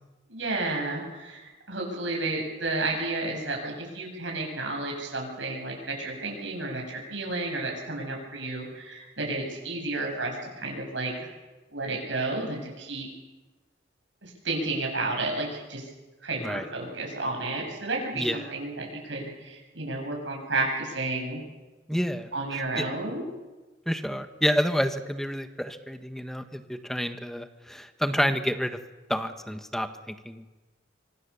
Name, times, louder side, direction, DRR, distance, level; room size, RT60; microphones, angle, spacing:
voice 1, 0.3-11.3 11.7-13.1 14.2-15.9 16.2-21.4 22.3-23.3, right 2 dB, 80° right, 0 dB, 7.7 m, -32 dB
voice 2, 21.9-22.8 23.9-28.8 29.1-30.6, equal, ahead, 8 dB, 1.4 m, -29 dB
25.5 x 25.0 x 7.2 m, 1.2 s
head